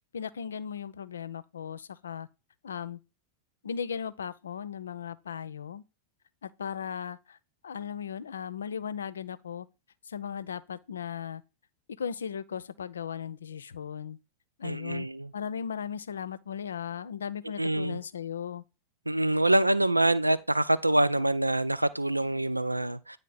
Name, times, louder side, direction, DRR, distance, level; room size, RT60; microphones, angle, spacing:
voice 1, 0.1-2.3 2.6-3.0 3.6-5.8 6.4-7.4 7.6-9.7 10.1-11.4 12.0-14.2 14.6-15.1 15.3-18.6, left 7 dB, 70° left, 0.4 m, -37 dB
voice 2, 14.6-15.3 17.6-18.0 19.1-23.2, right 1 dB, 85° right, 0.3 m, -25 dB
9.3 x 3.2 x 3.9 m
figure-of-eight pair, 90°, 0 cm